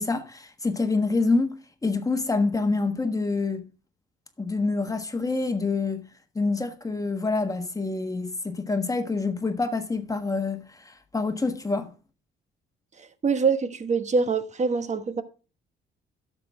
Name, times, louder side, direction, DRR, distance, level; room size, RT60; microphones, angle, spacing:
voice 1, 0.0-1.6 1.8-3.6 4.4-6.0 6.3-11.9, left 3 dB, 15° left, 1.4 m, -26 dB
voice 2, 13.0-15.2, right 5 dB, 35° right, 1.1 m, -25 dB
12.0 x 7.0 x 3.5 m
cardioid pair, 90°, 20 cm